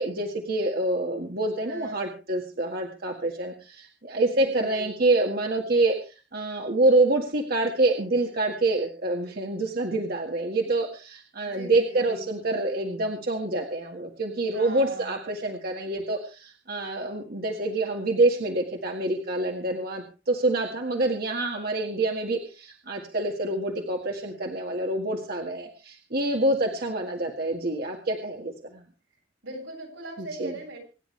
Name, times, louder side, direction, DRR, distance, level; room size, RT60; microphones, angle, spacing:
voice 1, 0.0-28.8 30.2-30.6, right 2 dB, 55° right, 2 dB, 1.9 m, -26 dB
voice 2, 1.6-2.2 4.3-4.9 11.4-12.3 14.5-15.2 29.4-30.8, right 2 dB, 85° right, 0 dB, 7.7 m, -39 dB
25.5 x 10.5 x 3.3 m, 0.34 s
head